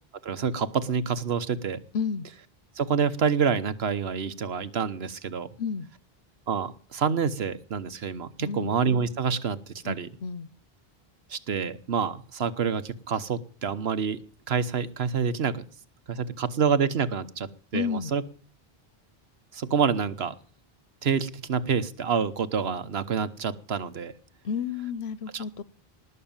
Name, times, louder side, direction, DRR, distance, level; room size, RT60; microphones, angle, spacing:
voice 1, 0.2-1.8 2.8-5.5 6.5-10.1 11.3-14.2 14.5-15.6 16.1-18.2 19.5-20.3 21.0-24.1 25.3-25.6, right 6 dB, 85° right, 13 dB, 1.3 m, -27 dB
voice 2, 1.9-2.3 5.6-5.9 8.4-8.7 9.8-10.5 17.7-18.1 24.4-25.6, left 6 dB, 85° left, 16 dB, 1.1 m, -31 dB
19.5 x 6.7 x 8.8 m, 0.42 s
omnidirectional pair, 1.0 m